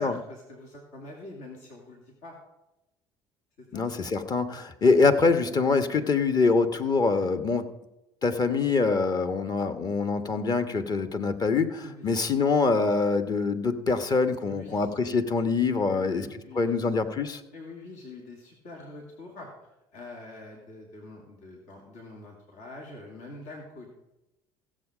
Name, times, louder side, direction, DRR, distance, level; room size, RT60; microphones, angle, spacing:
voice 1, 0.0-2.3 3.6-3.9 11.8-12.1 14.5-14.9 15.9-16.9 17.5-23.9, left 2 dB, 70° left, -1 dB, 2.7 m, -44 dB
voice 2, 3.7-7.7 8.2-16.3 16.5-17.4, left 4 dB, 35° left, 9 dB, 1.2 m, -24 dB
15.5 x 7.5 x 5.0 m, 0.94 s
hypercardioid pair, 75°, 11 cm